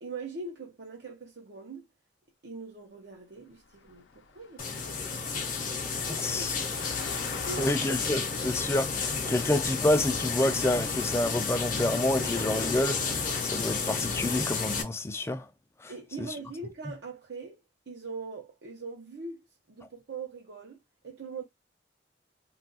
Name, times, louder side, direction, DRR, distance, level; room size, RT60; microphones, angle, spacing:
voice 1, 0.0-1.9 2.4-5.2 5.7-6.7 7.1-8.0 15.9-17.6 17.9-20.8 21.0-21.4, right 4 dB, 70° right, 0.7 m, -42 dB
Engine, 3.6-9.2, left 5 dB, 85° left, 0.5 m, -46 dB
sound 1, 4.6-14.8, left 5 dB, 45° left, 0.7 m, -31 dB
voice 2, 6.1-6.6 7.6-15.5 15.8-15.9 16.2-16.4, left 1 dB, 15° left, 0.3 m, -28 dB
2.3 x 2.3 x 3.8 m
head